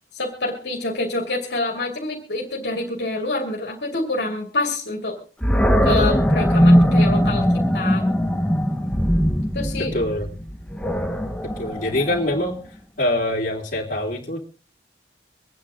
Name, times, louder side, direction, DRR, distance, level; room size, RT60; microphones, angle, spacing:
voice 1, 0.1-5.2 5.8-8.0 9.5-9.9, left 2 dB, 65° left, 0 dB, 2.6 m, -26 dB
Animal, 5.4-12.5, equal, 5° left, 1.1 m, -20 dB
voice 2, 9.8-10.3 11.4-12.6 13.0-14.4, left 1 dB, 45° left, 0 dB, 3.2 m, -24 dB
25.0 x 9.4 x 3.7 m, 0.37 s
head